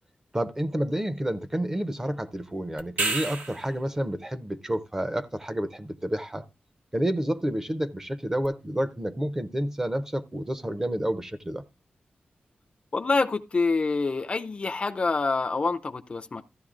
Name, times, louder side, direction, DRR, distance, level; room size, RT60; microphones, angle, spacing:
voice 1, 0.3-6.4 6.9-11.6, right 1 dB, 15° right, 0.5 m, -29 dB
sound 1, 2.8-3.8 8.4-8.5, right 3 dB, 85° right, 1.3 m, -29 dB
voice 2, 12.9-16.4, left 3 dB, 35° left, 0.4 m, -26 dB
14.0 x 10.5 x 2.4 m
wide cardioid pair, 155°, 3 cm